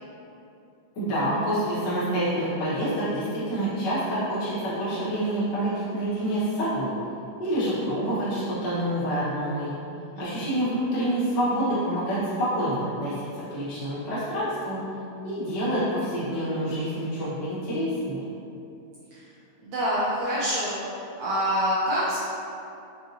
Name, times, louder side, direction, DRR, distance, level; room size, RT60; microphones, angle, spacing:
voice 1, 0.9-6.9 7.4-9.7 10.2-14.8 15.2-18.2, right 1 dB, 55° left, -12 dB, 1.2 m, -27 dB
voice 2, 10.1-10.5 19.1-19.3 19.6-22.2, equal, 80° right, -8 dB, 1.6 m, -27 dB
5.6 x 2.6 x 2.7 m, 2.7 s
omnidirectional pair, 3.8 m